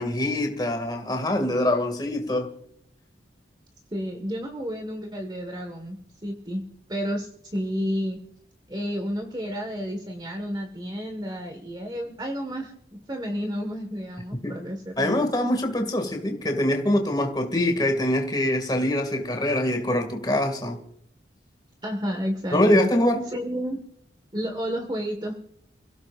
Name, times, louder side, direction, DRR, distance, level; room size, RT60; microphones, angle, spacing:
voice 1, 0.0-2.5 14.4-14.5 15.0-20.8 22.5-23.2, left 1 dB, 25° left, 2.3 m, -24 dB
voice 2, 3.9-6.6 6.9-8.2 8.7-15.1 21.8-22.9 23.3-23.8 24.3-25.3, equal, 25° right, 1.6 m, -31 dB
28.5 x 16.5 x 2.5 m
head